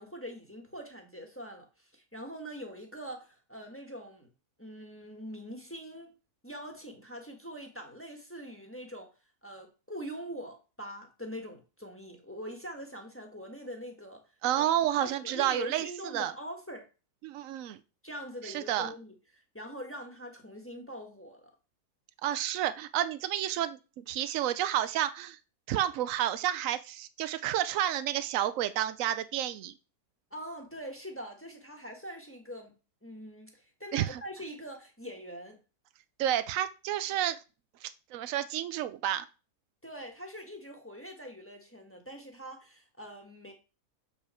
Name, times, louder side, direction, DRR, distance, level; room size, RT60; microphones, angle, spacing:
voice 1, 0.0-4.3 4.6-6.1 6.4-9.1 9.4-14.2 14.5-14.6 15.0-16.9 18.0-21.5 30.3-32.7 33.0-35.6 39.8-43.5, equal, 10° left, 1.3 m, -43 dB
voice 2, 14.4-15.9 16.1-16.3 17.2-17.8 18.5-18.9 22.2-25.4 25.7-29.7 33.9-34.2 36.2-37.4 37.8-39.2, right 12 dB, 65° right, 1.0 m, -30 dB
6.9 x 5.6 x 4.3 m
omnidirectional pair, 1.7 m